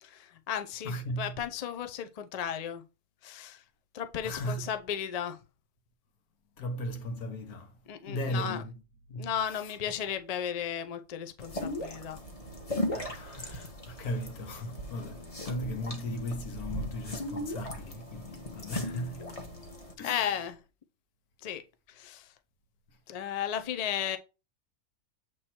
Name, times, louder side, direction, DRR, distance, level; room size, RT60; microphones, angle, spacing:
voice 1, 0.0-2.8 3.2-3.6 3.9-5.4 7.9-8.6 9.2-12.2 20.0-20.6 21.4-21.6 21.9-22.3 23.1-24.2, left 9 dB, 65° left, 0.3 m, -35 dB
voice 2, 0.8-1.4 4.2-4.7 6.6-7.7 8.1-8.7 9.1-9.3 12.9-19.3 20.0-20.3, left 1 dB, 85° left, 1.5 m, -37 dB
sound 1, 11.4-19.9, left 1 dB, 25° left, 1.1 m, -38 dB
7.7 x 3.1 x 4.3 m
omnidirectional pair, 1.5 m